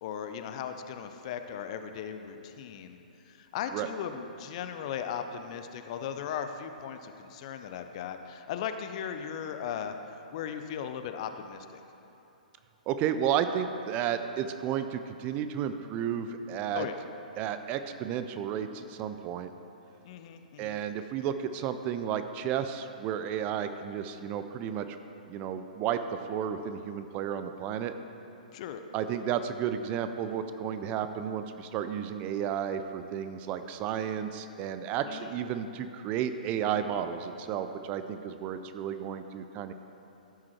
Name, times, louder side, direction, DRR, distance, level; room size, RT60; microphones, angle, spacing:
voice 1, 0.0-10.0 10.3-11.8 16.7-17.0 20.0-20.8 28.5-28.8 35.0-35.4, left 8 dB, 45° left, 8 dB, 0.6 m, -37 dB
voice 2, 12.9-16.9 17.4-19.5 20.6-25.0 25.3-26.0 26.3-27.9 28.9-39.7, right 9 dB, 30° right, 9 dB, 0.5 m, -32 dB
13.5 x 6.1 x 4.5 m, 2.9 s
figure-of-eight pair, 120°, 5 cm